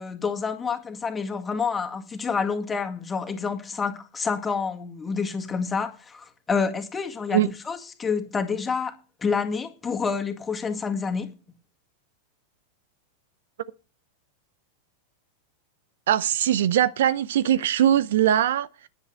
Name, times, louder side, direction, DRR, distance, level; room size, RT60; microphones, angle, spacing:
voice 1, 0.0-8.9 9.2-11.3, left 5 dB, 15° left, 2.0 m, -28 dB
voice 2, 16.1-18.9, right 11 dB, 60° right, 0.6 m, -21 dB
10.5 x 9.9 x 6.3 m
figure-of-eight pair, 90°, 0 cm